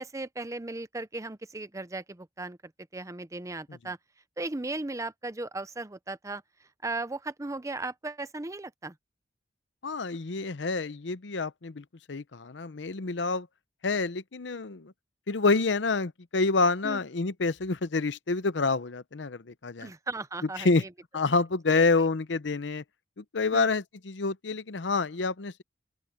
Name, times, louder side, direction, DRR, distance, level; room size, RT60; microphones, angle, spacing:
voice 1, 0.0-4.0 4.4-6.4 6.8-8.9 16.8-17.0 19.8-20.9 21.7-21.9 23.5-23.7, right 2 dB, 15° right, 0.6 m, -36 dB
voice 2, 9.8-13.5 13.8-14.9 15.3-19.9 20.6-20.8 21.1-22.8 23.2-25.6, left 3 dB, 75° left, 0.7 m, -28 dB
open air
head